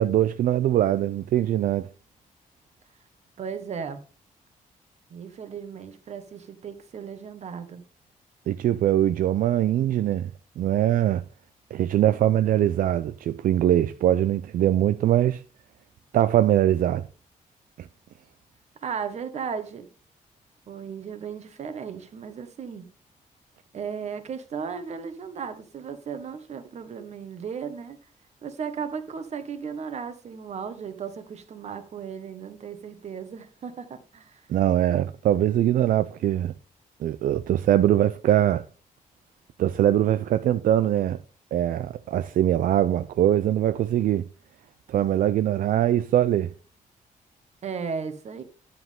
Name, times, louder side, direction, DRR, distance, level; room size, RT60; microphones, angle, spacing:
voice 1, 0.0-1.9 8.5-10.3 10.6-11.2 11.7-15.4 16.1-17.0 17.8-17.9 34.5-36.5 37.0-38.6 39.6-41.2 41.5-44.2 44.9-46.5, right 12 dB, 75° right, 0.5 m, -22 dB
voice 2, 3.4-4.0 5.1-7.8 18.8-19.9 20.7-22.9 23.7-28.0 28.4-34.4 47.6-48.4, right 6 dB, 50° right, 1.4 m, -35 dB
10.5 x 7.6 x 3.6 m
wide cardioid pair, 160°, 14 cm